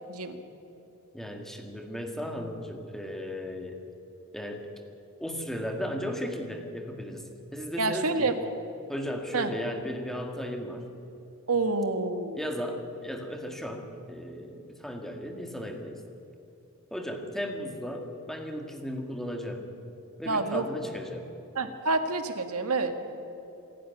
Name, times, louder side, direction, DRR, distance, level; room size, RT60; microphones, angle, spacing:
voice 1, 1.1-3.8 4.3-4.7 5.2-8.3 8.9-10.9 12.3-16.0 16.9-19.7 20.2-21.3 22.6-22.7, equal, ahead, 4 dB, 1.9 m, -35 dB
voice 2, 7.8-8.3 9.3-9.5 11.5-12.4 20.3-20.7 21.5-22.9, right 3 dB, 75° right, 8 dB, 1.7 m, -28 dB
26.5 x 11.5 x 9.5 m, 2.9 s
head